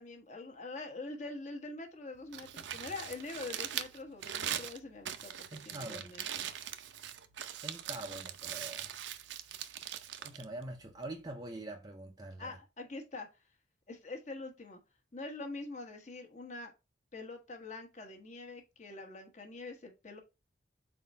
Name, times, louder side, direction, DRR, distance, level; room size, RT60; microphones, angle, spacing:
voice 1, 0.0-6.5 12.4-13.3 13.9-14.8 15.1-16.7 17.1-20.2, left 3 dB, 40° left, 1.3 m, -44 dB
Crumpling crinkling, 2.2-11.3, right 10 dB, 75° right, 0.6 m, -41 dB
voice 2, 5.5-6.1 7.6-8.9 10.2-12.6, right 1 dB, 20° right, 0.5 m, -44 dB
4.2 x 4.2 x 5.3 m
head